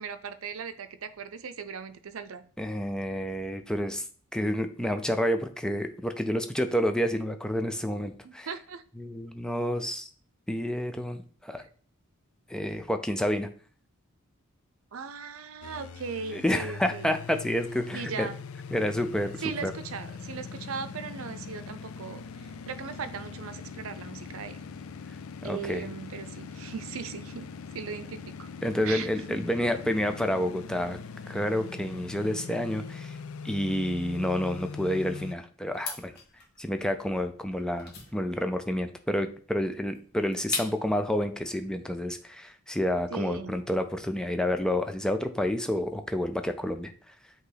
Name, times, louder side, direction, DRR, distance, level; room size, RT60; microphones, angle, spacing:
voice 1, 0.0-2.4 8.2-8.8 11.6-11.7 14.9-17.1 17.9-18.4 19.4-24.6 25.4-27.5 27.7-28.5 28.8-29.4 43.1-43.5, right 6 dB, 75° right, 11 dB, 0.6 m, -38 dB
voice 2, 2.6-4.0 4.3-8.5 9.0-10.1 10.5-11.6 12.5-13.5 16.3-18.3 18.7-19.3 19.6-19.7 25.4-25.9 28.6-31.0 31.3-33.2 33.4-36.1 36.6-46.9, equal, 5° left, 7 dB, 0.4 m, -29 dB
sound 1, 15.6-35.3, left 5 dB, 80° left, 0.4 m, -42 dB
sound 2, 35.7-41.0, left 4 dB, 50° left, 1.4 m, -41 dB
8.2 x 3.0 x 3.9 m, 0.44 s
head